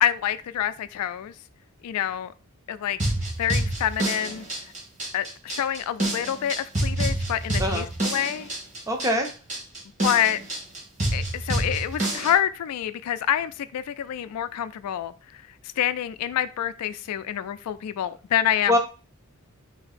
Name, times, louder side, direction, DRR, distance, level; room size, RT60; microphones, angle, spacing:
voice 1, 0.0-1.3 1.8-2.3 2.7-3.0 3.4-4.5 5.1-8.5 10.0-10.4 11.1-15.1 15.8-18.8, left 10 dB, 90° left, 0.3 m, -27 dB
sound 1, 3.0-12.3, right 1 dB, 30° right, 1.0 m, -28 dB
voice 2, 8.9-9.3 18.7-18.8, left 1 dB, 15° right, 0.5 m, -23 dB
2.9 x 2.6 x 4.1 m
head